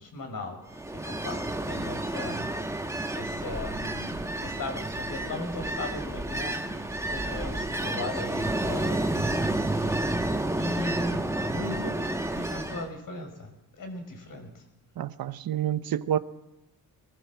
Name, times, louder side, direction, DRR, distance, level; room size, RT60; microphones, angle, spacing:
voice 1, 0.0-2.8 3.1-9.9 10.3-14.6, left 2 dB, 60° left, 6.2 m, -38 dB
Ocean, 0.7-12.9, right 1 dB, 10° right, 1.6 m, -30 dB
voice 2, 15.0-16.2, right 11 dB, 75° right, 1.0 m, -28 dB
23.0 x 19.0 x 7.5 m
cardioid pair, 100°, 36 cm